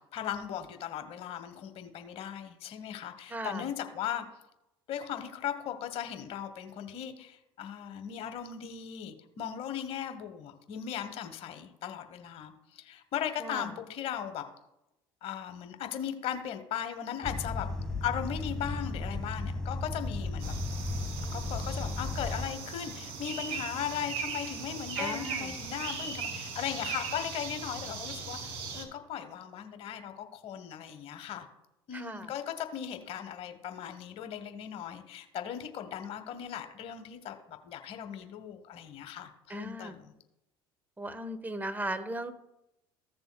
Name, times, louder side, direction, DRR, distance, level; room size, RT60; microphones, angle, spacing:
voice 1, 0.1-4.2 4.9-14.4 15.2-20.5 21.3-31.5 31.9-40.1, left 9 dB, 60° left, 8 dB, 1.1 m, -38 dB
voice 2, 3.3-3.7 13.4-13.7 25.0-25.5 31.9-32.3 39.5-39.9 41.0-42.3, right 1 dB, 15° right, 10 dB, 1.1 m, -37 dB
sound 1, 17.2-22.5, left 2 dB, 5° left, 1.6 m, -35 dB
sound 2, 20.4-28.8, right 5 dB, 60° right, 2.5 m, -39 dB
15.0 x 6.9 x 2.2 m, 0.88 s
hypercardioid pair, 70°, 12 cm